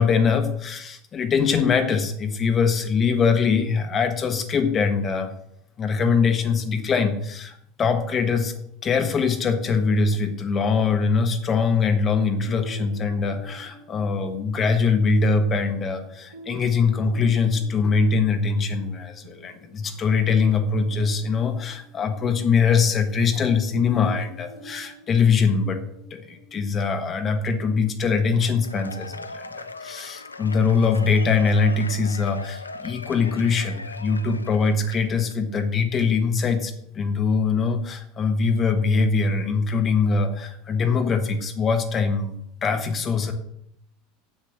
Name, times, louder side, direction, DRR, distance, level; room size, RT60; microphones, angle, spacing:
voice 1, 0.0-5.3 5.8-8.5 8.8-25.8 26.1-43.3, left 5 dB, 30° left, 6 dB, 1.5 m, -22 dB
sound 1, 11.7-27.3, right 4 dB, 80° right, 1.6 m, -47 dB
Cheering / Applause / Crowd, 28.5-35.3, left 3 dB, 85° left, 0.4 m, -39 dB
7.5 x 7.2 x 7.5 m, 0.74 s
figure-of-eight pair, 75°, 0 cm